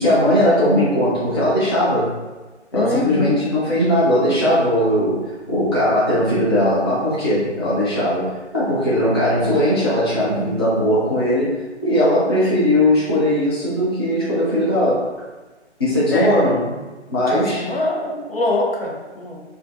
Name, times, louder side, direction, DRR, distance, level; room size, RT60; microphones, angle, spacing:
voice 1, 0.0-2.1 2.7-15.1 15.8-16.7 17.1-17.6, left 1 dB, 20° left, -10 dB, 0.5 m, -19 dB
voice 2, 2.7-3.5 16.1-16.4 17.3-19.4, left 2 dB, 55° left, -1 dB, 0.8 m, -24 dB
5.0 x 2.5 x 2.5 m, 1.2 s
figure-of-eight pair, 155°, 36 cm